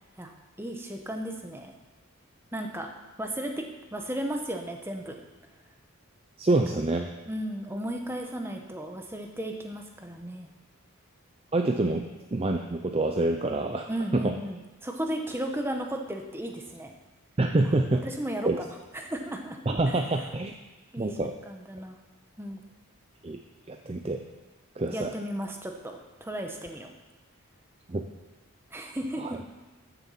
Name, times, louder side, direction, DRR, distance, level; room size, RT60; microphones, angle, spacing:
voice 1, 0.6-1.7 2.5-2.9 3.2-5.2 6.5-6.6 7.3-10.5 13.9-16.9 18.0-18.7 18.9-19.6 19.9-20.0 20.9-22.0 22.4-22.6 24.8-26.9 28.7-29.2, right 1 dB, 10° right, 3 dB, 1.1 m, -35 dB
voice 2, 6.4-7.1 11.5-14.4 17.4-18.0 18.4-18.6 19.7-20.5 21.0-21.3 23.2-23.4 23.7-24.2 24.8-25.1 27.9-28.1 29.2-29.4, right 2 dB, 25° right, 4 dB, 0.5 m, -27 dB
13.5 x 7.1 x 5.8 m, 1.1 s
head